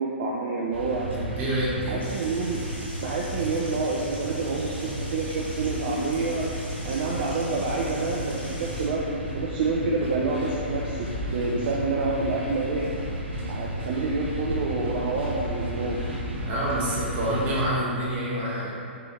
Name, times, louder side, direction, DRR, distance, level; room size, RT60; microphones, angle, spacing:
voice 1, 0.0-1.1 1.9-2.7 3.0-6.5 6.8-12.8 13.5-16.0, right 3 dB, 45° right, -3 dB, 0.4 m, -28 dB
sound 1, 0.7-17.7, equal, 65° right, 1.1 m, -33 dB
voice 2, 1.1-2.0 16.4-18.7, right 1 dB, 25° right, -7 dB, 1.3 m, -27 dB
sound 2, 2.0-8.9, equal, 60° left, 1.4 m, -43 dB
4.4 x 3.3 x 3.6 m, 2.6 s
figure-of-eight pair, 120°, 6 cm